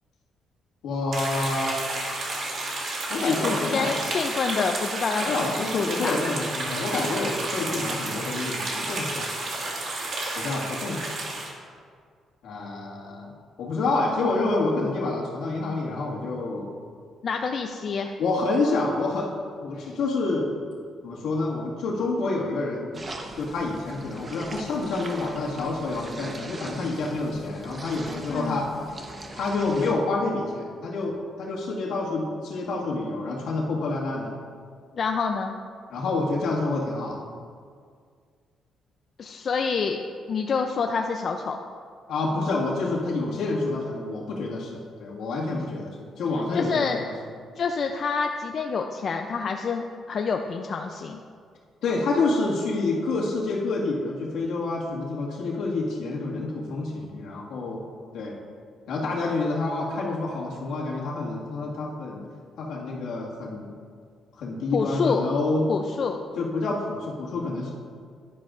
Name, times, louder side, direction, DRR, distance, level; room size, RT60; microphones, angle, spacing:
voice 1, 0.8-1.8 3.1-3.9 5.2-9.3 10.4-11.0 12.4-13.3 13.6-16.7 18.2-19.3 19.6-20.5 21.0-23.0 23.4-28.7 29.3-34.3 35.9-37.2 42.1-47.1 51.8-57.8 58.1-58.3 58.9-62.2 62.6-63.7 64.4-65.6 66.4-67.7, left 3 dB, 80° left, -4 dB, 1.9 m, -28 dB
sound 1, 1.1-11.5, right 2 dB, 60° right, 2.0 m, -31 dB
voice 2, 3.2-6.2 17.2-18.1 28.3-28.6 34.9-35.5 39.2-40.0 40.3-41.6 46.5-47.0 47.6-51.2 64.7-65.2 65.7-66.2, left 5 dB, 50° left, 4 dB, 0.5 m, -27 dB
sound 2, 22.9-29.9, right 2 dB, 30° right, 1.0 m, -41 dB
11.0 x 10.5 x 2.5 m, 2.1 s
cardioid pair, 90°, 0 cm